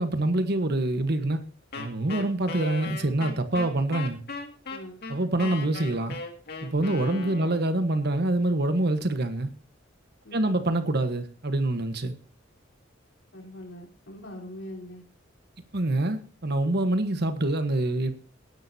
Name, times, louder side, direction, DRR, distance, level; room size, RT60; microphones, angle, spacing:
voice 1, 0.0-1.4 1.8-4.2 5.1-6.2 6.6-9.5 10.3-12.2 15.7-18.3, right 2 dB, 55° right, 1.3 m, -26 dB
Wind instrument woodwind instrument, 1.7-7.8, left 3 dB, 55° left, 2.2 m, -37 dB
voice 2, 4.7-5.1 7.1-7.5 10.2-10.5 13.3-15.0, left 1 dB, 75° left, 3.8 m, -42 dB
18.0 x 10.5 x 2.8 m
head